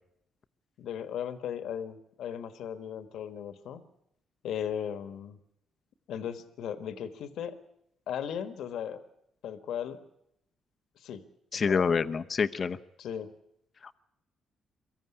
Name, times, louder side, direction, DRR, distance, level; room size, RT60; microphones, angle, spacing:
voice 1, 0.8-3.8 4.4-5.4 6.1-7.6 8.1-9.0 9.4-10.0 11.0-11.2 11.5-12.1 13.0-13.3, left 9 dB, 75° left, 11 dB, 1.5 m, -37 dB
voice 2, 11.5-12.8, left 5 dB, 40° left, 10 dB, 0.8 m, -27 dB
23.5 x 14.5 x 9.8 m, 0.80 s
cardioid pair, 90°, 0 cm